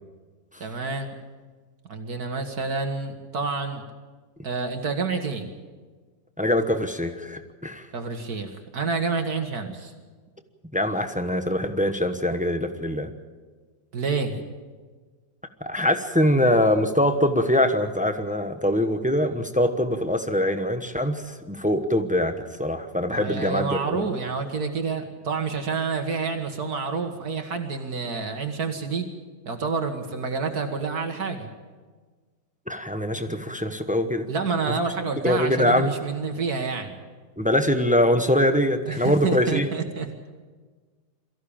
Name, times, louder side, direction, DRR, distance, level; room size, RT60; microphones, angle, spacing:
voice 1, 0.6-1.1 1.9-3.8 4.4-5.5 7.9-9.9 13.9-14.4 23.1-29.1 29.5-31.5 34.3-37.0 38.9-40.1, right 4 dB, 60° right, 5 dB, 2.0 m, -28 dB
voice 2, 6.4-7.9 10.7-13.1 15.6-24.0 32.7-34.3 35.2-35.9 37.4-39.7, left 1 dB, 5° right, 7 dB, 0.9 m, -23 dB
23.0 x 15.0 x 8.8 m, 1.4 s
omnidirectional pair, 1.9 m